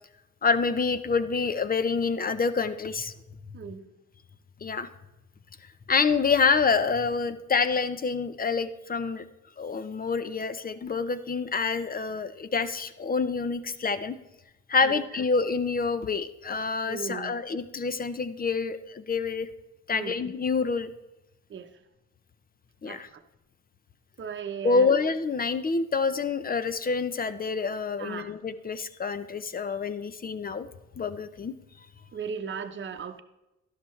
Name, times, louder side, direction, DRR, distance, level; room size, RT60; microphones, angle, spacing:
voice 1, 0.4-3.1 4.6-4.9 5.9-9.2 9.6-14.2 14.7-19.5 19.9-20.9 22.8-23.1 24.6-30.7 31.0-31.5, left 5 dB, 30° left, 12 dB, 0.7 m, -27 dB
voice 2, 3.5-3.9 14.8-15.0 16.9-17.4 19.9-20.2 21.5-21.7 22.9-23.2 24.2-24.9 28.0-28.3 32.1-33.2, right 7 dB, 40° right, 7 dB, 0.9 m, -37 dB
12.0 x 11.5 x 3.2 m, 0.98 s
cardioid pair, 90°, 30 cm